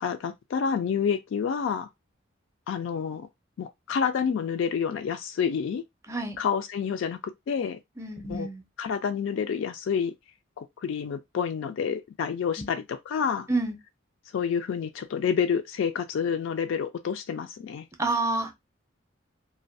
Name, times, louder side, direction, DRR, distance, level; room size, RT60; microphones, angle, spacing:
voice 1, 0.0-1.9 2.7-3.3 3.6-5.8 6.4-7.2 7.5-7.8 8.2-8.5 8.8-10.1 10.6-13.5 14.3-17.8, left 7 dB, 70° left, 0.3 m, -28 dB
voice 2, 8.0-8.6 12.6-12.7 13.5-13.8 18.0-18.5, right 2 dB, 15° right, 0.5 m, -28 dB
2.3 x 2.1 x 2.5 m
head